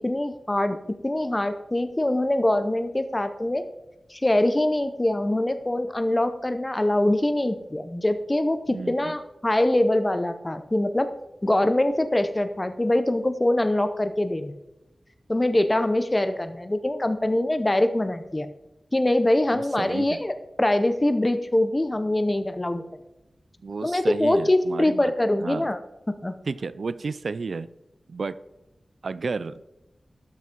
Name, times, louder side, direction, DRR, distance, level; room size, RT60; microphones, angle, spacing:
voice 1, 0.0-3.6 4.1-11.1 11.4-14.5 15.3-18.5 18.9-22.8 23.8-25.8 26.1-26.3, left 1 dB, 25° left, 10 dB, 0.8 m, -23 dB
voice 2, 8.7-9.2 19.5-20.2 23.6-25.1 25.4-25.7 26.4-27.7 28.1-28.4 29.0-29.6, right 4 dB, 80° right, 16 dB, 0.3 m, -32 dB
12.5 x 6.1 x 4.5 m, 0.94 s
wide cardioid pair, 75°, 0 cm